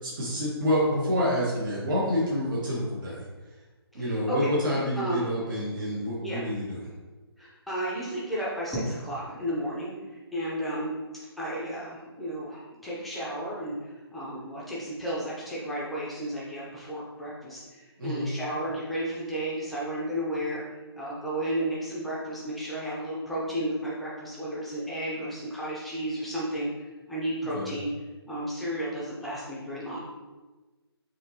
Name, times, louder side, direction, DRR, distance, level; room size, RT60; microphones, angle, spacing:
voice 1, 0.0-3.2 3.9-6.9 18.0-18.3 27.5-27.7, equal, 50° right, -6 dB, 1.4 m, -28 dB
voice 2, 3.9-4.5 5.0-5.3 6.2-6.4 7.4-9.9 10.3-10.9 11.4-20.6 20.9-27.9 28.3-30.1, right 1 dB, ahead, -8 dB, 0.7 m, -33 dB
5.7 x 2.9 x 2.9 m, 1.2 s
figure-of-eight pair, 150°, 14 cm